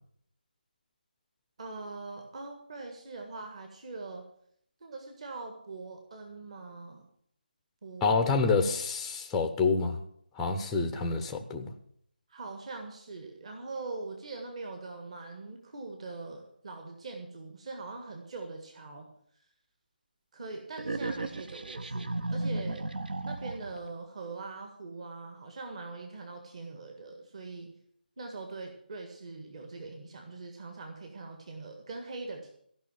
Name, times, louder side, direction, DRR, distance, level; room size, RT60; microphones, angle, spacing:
voice 1, 1.6-4.2 4.8-7.1 7.8-8.2 12.3-19.1 20.3-22.9 23.2-27.7 28.2-32.5, right 3 dB, 40° right, 3 dB, 1.7 m, -42 dB
voice 2, 8.0-10.0 10.4-11.7, left 4 dB, 5° left, 5 dB, 0.6 m, -27 dB
sound 1, 20.8-23.9, right 2 dB, 65° right, 1.0 m, -34 dB
15.0 x 5.7 x 9.0 m, 0.67 s
figure-of-eight pair, 165°, 5 cm